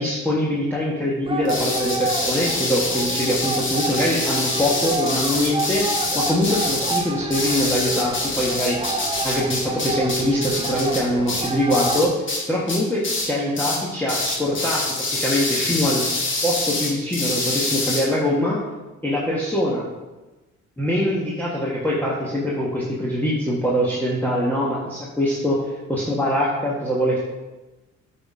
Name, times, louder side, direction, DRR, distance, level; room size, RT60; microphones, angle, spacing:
voice 1, 0.0-5.9 6.1-8.8 9.2-16.0 16.4-18.6 19.0-19.9 20.8-27.2, equal, 5° left, -6 dB, 1.5 m, -23 dB
sound 1, 1.2-12.0, right 3 dB, 20° right, 0.7 m, -29 dB
sound 2, 1.4-12.4 12.7-13.3 13.5-13.8 14.1-18.0, left 2 dB, 40° left, 1.8 m, -26 dB
8.4 x 4.2 x 4.9 m, 1.1 s
cardioid pair, 90°, 30 cm